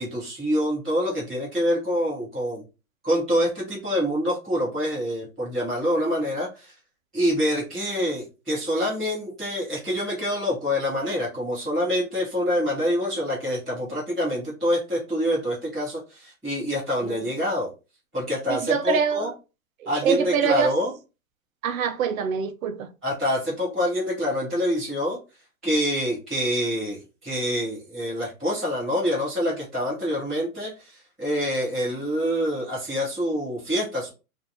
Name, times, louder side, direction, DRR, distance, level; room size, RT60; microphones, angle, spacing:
voice 1, 0.0-2.6 3.0-6.7 7.1-17.7 18.1-19.3 19.8-20.9 23.0-25.2 25.6-34.1, equal, ahead, 0.3 m, -26 dB
voice 2, 18.5-19.3 19.8-20.7 21.6-22.9, right 7 dB, 65° right, 0.6 m, -25 dB
3.5 x 2.6 x 2.7 m
hypercardioid pair, 140°, 44 cm